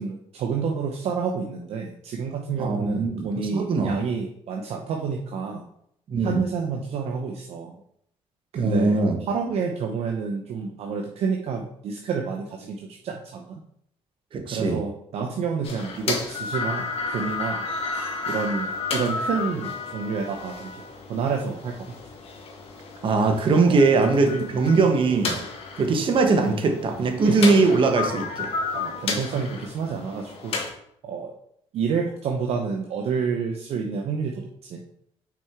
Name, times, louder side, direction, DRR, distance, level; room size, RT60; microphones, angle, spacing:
voice 1, 0.0-5.6 6.2-7.7 8.5-9.0 9.3-13.6 14.5-17.6 18.3-20.7 21.1-21.9 23.6-23.8 27.3-27.6 28.7-30.6 31.0-31.3 31.7-34.8, right 5 dB, 65° right, 1 dB, 0.7 m, -29 dB
voice 2, 2.6-4.0 6.1-6.4 8.5-9.2 14.3-14.8 23.0-25.4 25.8-28.5, right 3 dB, 50° right, 4 dB, 1.2 m, -21 dB
sound 1, 15.6-30.7, left 4 dB, 60° left, 1.3 m, -32 dB
6.0 x 4.5 x 3.6 m, 0.72 s
cardioid pair, 90°, 11 cm